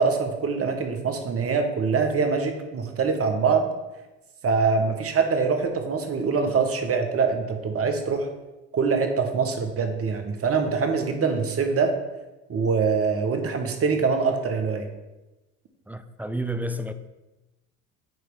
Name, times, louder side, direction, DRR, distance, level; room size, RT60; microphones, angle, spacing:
voice 1, 0.0-3.7 4.4-8.3 8.7-11.9 12.5-14.9, right 5 dB, 40° right, 1.2 m, -24 dB
voice 2, 15.9-16.9, right 1 dB, 5° right, 0.4 m, -30 dB
9.3 x 3.3 x 4.7 m
hypercardioid pair, 70°, 35 cm